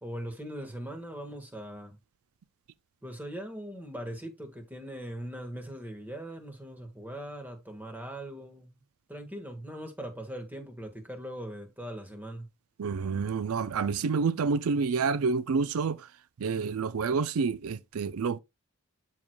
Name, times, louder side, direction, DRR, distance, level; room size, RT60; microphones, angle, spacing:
voice 1, 0.0-2.0 3.0-8.8 9.1-12.5, right 1 dB, 10° right, 1.4 m, -40 dB
voice 2, 12.8-16.1 16.4-18.4, right 5 dB, 75° right, 0.4 m, -28 dB
12.5 x 4.7 x 2.2 m
head